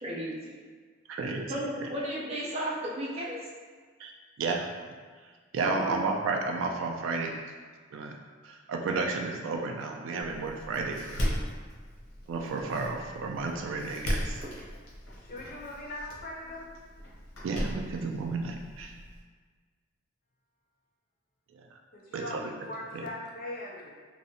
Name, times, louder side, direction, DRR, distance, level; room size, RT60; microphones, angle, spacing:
voice 1, 0.0-0.6 1.5-3.4 5.6-5.9, right 1 dB, 30° right, -5 dB, 0.5 m, -34 dB
voice 2, 1.1-1.6 4.0-4.1 4.4-4.7 5.5-7.4 7.9-8.1 8.4-11.3 12.3-14.4 17.4-18.9 21.5-21.7 22.1-22.4 22.9-23.0, right 3 dB, 85° right, 2 dB, 0.3 m, -32 dB
Door, 10.2-19.2, equal, 80° left, 0.7 m, -37 dB
voice 3, 15.2-16.7 21.9-23.9, left 1 dB, 45° left, -2 dB, 0.4 m, -40 dB
2.7 x 2.0 x 2.6 m, 1.5 s
head